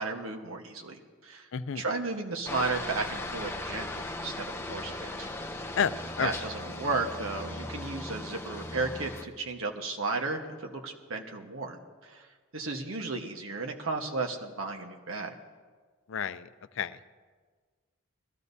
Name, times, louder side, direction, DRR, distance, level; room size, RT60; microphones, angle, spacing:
voice 1, 0.0-5.3 5.7-5.9 6.2-12.3 12.5-15.3, right 3 dB, 70° right, 3 dB, 1.3 m, -34 dB
voice 2, 1.5-1.8 5.8-6.3 16.1-16.5 16.8-17.0, left 7 dB, 60° left, 13 dB, 0.4 m, -30 dB
Aircraft, 2.5-9.3, left 2 dB, 10° left, 0.6 m, -38 dB
20.5 x 15.0 x 2.7 m, 1.5 s
head